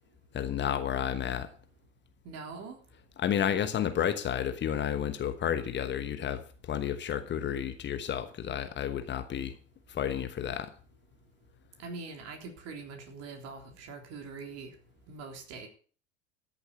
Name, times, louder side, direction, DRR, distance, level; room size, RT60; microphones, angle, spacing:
voice 1, 0.3-1.5 3.2-9.5 9.9-10.7, left 9 dB, 30° left, 10 dB, 1.2 m, -31 dB
voice 2, 2.2-2.8 11.8-14.8 15.1-15.7, right 4 dB, 45° right, 4 dB, 3.6 m, -43 dB
13.5 x 7.2 x 6.6 m, 0.41 s
figure-of-eight pair, 75°, 35 cm